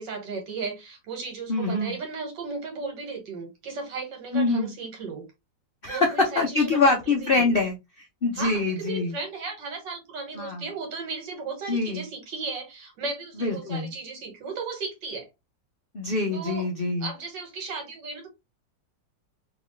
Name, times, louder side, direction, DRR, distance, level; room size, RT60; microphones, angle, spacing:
voice 1, 0.0-5.2 5.9-7.5 8.3-15.3 16.3-16.7 17.0-18.3, right 4 dB, 75° right, 1.9 m, -35 dB
voice 2, 1.5-1.9 4.3-4.7 5.8-9.1 10.4-10.6 11.7-12.0 13.4-13.9 15.9-17.1, left 3 dB, 90° left, 0.4 m, -24 dB
3.2 x 2.9 x 3.1 m
omnidirectional pair, 2.0 m